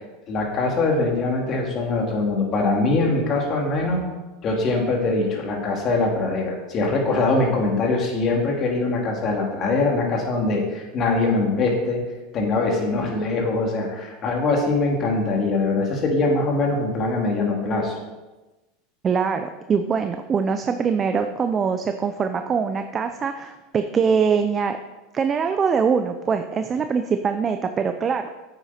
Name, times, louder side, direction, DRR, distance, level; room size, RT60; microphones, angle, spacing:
voice 1, 0.3-4.1 4.4-12.0 12.3-17.9, left 3 dB, 40° left, 0 dB, 2.8 m, -22 dB
voice 2, 19.0-24.8 25.1-28.3, right 6 dB, 25° right, 7 dB, 0.5 m, -23 dB
9.3 x 8.2 x 4.3 m, 1.1 s
supercardioid pair, 115°, 0 cm